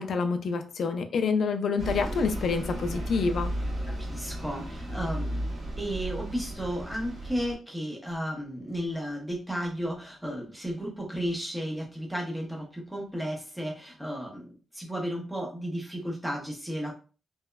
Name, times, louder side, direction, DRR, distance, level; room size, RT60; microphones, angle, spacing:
voice 1, 0.0-3.5, left 5 dB, 65° left, 0.3 m, -27 dB
Bus, 1.8-7.5, right 1 dB, 85° right, 0.9 m, -34 dB
voice 2, 3.9-5.4 5.8-16.9, equal, 5° right, 0.7 m, -34 dB
2.9 x 2.1 x 2.2 m
wide cardioid pair, 145°, 0 cm